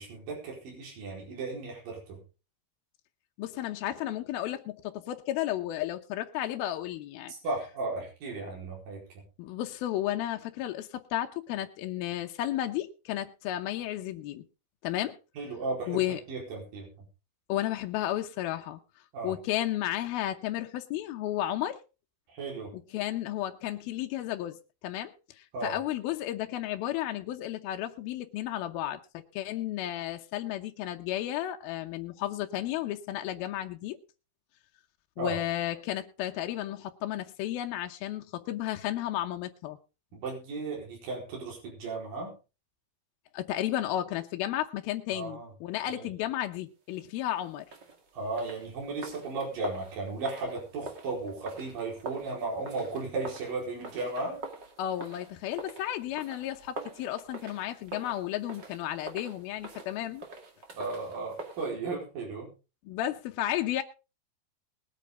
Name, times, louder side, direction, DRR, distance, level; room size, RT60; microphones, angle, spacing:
voice 1, 0.0-2.2 7.4-9.2 15.4-16.0 16.3-16.9 19.1-19.3 22.3-22.7 25.5-25.8 35.2-35.4 40.1-42.3 45.1-45.5 45.9-46.1 48.1-54.4 60.7-62.5, right 3 dB, 60° right, 6.1 m, -35 dB
voice 2, 3.4-7.3 9.4-14.4 14.8-15.2 15.9-16.2 17.5-18.8 19.2-21.8 22.7-24.6 24.8-29.0 29.3-34.0 35.2-39.8 43.3-47.7 54.8-60.3 62.9-63.8, left 13 dB, 80° left, 2.6 m, -33 dB
sound 1, 47.6-61.7, right 2 dB, 35° right, 2.1 m, -45 dB
21.0 x 8.9 x 3.8 m
omnidirectional pair, 4.5 m